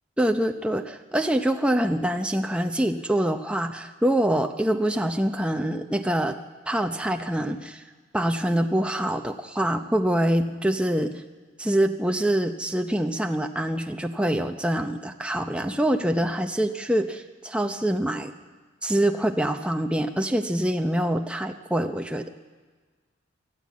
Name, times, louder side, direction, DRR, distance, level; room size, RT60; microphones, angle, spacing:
voice 1, 0.2-6.4 6.7-7.8 8.1-11.2 11.6-18.3 18.8-22.3, right 1 dB, 5° right, 5 dB, 0.7 m, -25 dB
24.0 x 14.0 x 8.4 m, 1.4 s
head